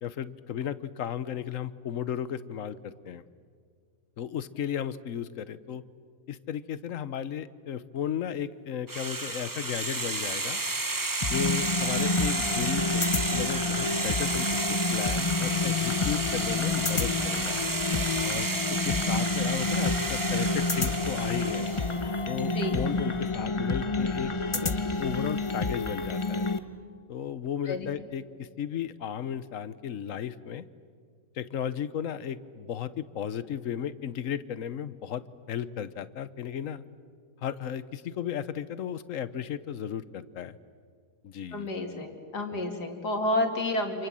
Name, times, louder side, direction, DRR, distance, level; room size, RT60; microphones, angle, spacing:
voice 1, 0.0-3.2 4.2-5.8 6.3-10.6 11.2-17.6 18.2-21.7 22.3-26.5 27.1-30.6 31.3-36.8 37.4-40.6 41.2-41.7 42.5-42.6, left 9 dB, 60° left, 15 dB, 1.2 m, -35 dB
sound 1, 8.9-21.9, right 2 dB, 15° right, 0.7 m, -32 dB
sound 2, 11.2-26.6, left 3 dB, 25° left, 0.8 m, -29 dB
voice 2, 41.5-44.1, left 1 dB, 80° left, 4 dB, 3.1 m, -30 dB
29.0 x 27.5 x 7.6 m, 2.1 s
omnidirectional pair, 1.7 m